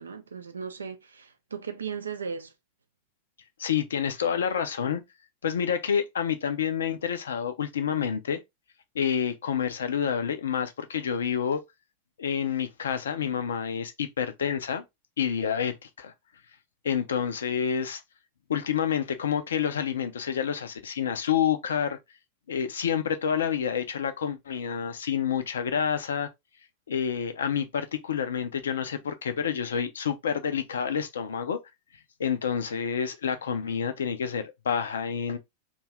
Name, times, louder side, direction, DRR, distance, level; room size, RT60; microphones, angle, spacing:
voice 1, 0.0-2.5, right 6 dB, 75° right, 0.5 m, -37 dB
voice 2, 3.6-5.0 5.4-8.4 8.9-11.6 12.2-14.8 15.2-16.1 16.8-18.0 18.5-22.0 22.5-26.3 26.9-31.6 32.2-35.4, left 8 dB, 65° left, 0.5 m, -28 dB
2.6 x 2.3 x 3.1 m
figure-of-eight pair, 90°, 0 cm